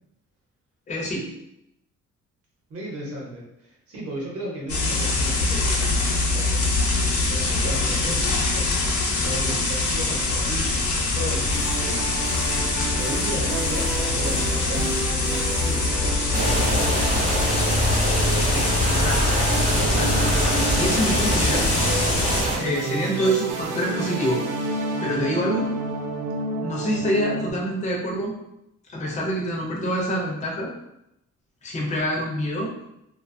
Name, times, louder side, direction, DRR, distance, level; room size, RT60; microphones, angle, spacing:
voice 1, 0.9-1.3 18.5-19.4 19.7-21.7 22.6-24.4 25.0-25.7 26.6-28.3 28.9-30.7 31.6-32.7, equal, 25° left, -2 dB, 0.5 m, -26 dB
voice 2, 2.7-6.6 7.1-8.9 9.2-12.4 12.9-17.9, right 1 dB, 50° right, -3 dB, 0.8 m, -36 dB
sound 1, 4.7-22.4, left 3 dB, 75° left, 0.7 m, -24 dB
sound 2, 11.5-27.5, right 3 dB, 85° right, 0.5 m, -31 dB
sound 3, 16.3-22.6, equal, 25° right, 0.5 m, -24 dB
2.6 x 2.2 x 2.5 m, 0.84 s
cardioid pair, 180°, 30 cm